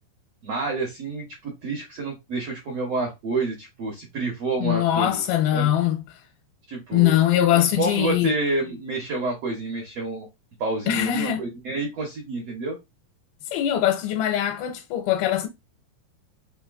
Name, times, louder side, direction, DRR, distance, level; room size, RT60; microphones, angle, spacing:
voice 1, 0.4-5.2 5.5-5.7 6.7-7.2 7.5-10.3 10.6-12.8, right 3 dB, 70° right, 1.5 m, -29 dB
voice 2, 4.6-6.2 6.9-8.3 10.9-11.4 13.5-15.5, left 12 dB, 80° left, 2.5 m, -22 dB
5.7 x 2.9 x 2.4 m
omnidirectional pair, 4.5 m